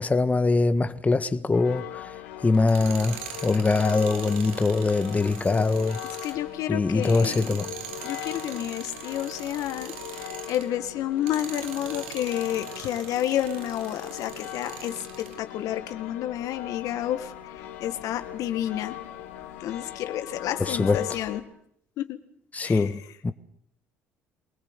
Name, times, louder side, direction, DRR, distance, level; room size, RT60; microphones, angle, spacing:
voice 1, 0.0-2.2 2.4-6.0 6.7-7.7 20.6-21.1 22.5-23.3, left 3 dB, 25° left, 1.5 m, -23 dB
sound 1, 1.5-21.4, left 12 dB, 85° left, 3.0 m, -40 dB
Tools, 2.5-10.7 11.2-15.4, right 10 dB, 85° right, 2.0 m, -42 dB
voice 2, 6.2-7.6 8.0-9.9 10.5-17.3 17.8-19.0 19.6-21.4 22.0-22.2 22.6-22.8, left 12 dB, 65° left, 1.8 m, -30 dB
25.0 x 19.0 x 8.2 m
hypercardioid pair, 65°, 6 cm